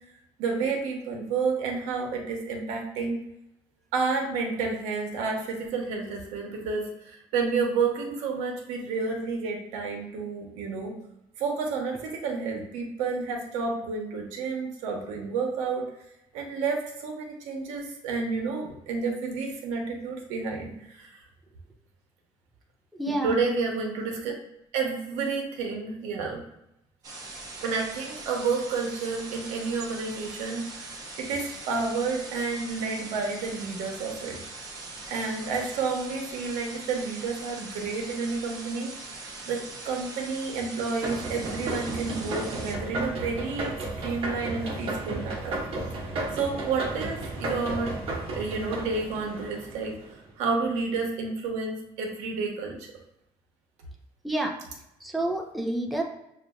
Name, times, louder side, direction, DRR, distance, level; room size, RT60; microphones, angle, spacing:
voice 1, 0.4-3.2 3.9-10.9 11.4-15.8 16.3-21.2 23.2-24.3 24.7-26.4 27.6-34.4 35.1-38.9 39.4-45.6 46.3-47.9 48.3-52.9, right 4 dB, 85° right, 1 dB, 1.0 m, -30 dB
voice 2, 22.9-23.4 54.2-54.6 55.0-56.0, right 1 dB, ahead, 0 dB, 0.6 m, -28 dB
sound 1, 27.0-42.7, right 3 dB, 30° right, 0.8 m, -41 dB
sound 2, 41.0-50.1, right 2 dB, 55° right, 1.1 m, -33 dB
6.5 x 2.5 x 2.3 m, 0.83 s
cardioid pair, 135°, 12 cm